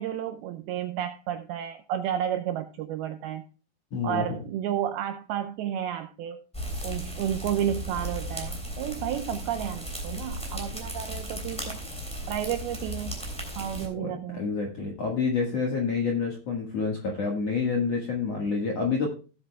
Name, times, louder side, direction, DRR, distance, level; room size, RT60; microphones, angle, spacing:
voice 1, 0.0-3.4 4.0-6.4 6.8-11.8 12.3-13.2 13.6-14.5, right 10 dB, 90° right, 7 dB, 2.2 m, -31 dB
voice 2, 3.9-4.4 13.9-19.1, left 5 dB, 65° left, -1 dB, 1.6 m, -28 dB
sound 1, 6.5-13.9, equal, ahead, 1.8 m, -36 dB
17.0 x 8.3 x 2.2 m, 0.36 s
omnidirectional pair, 5.2 m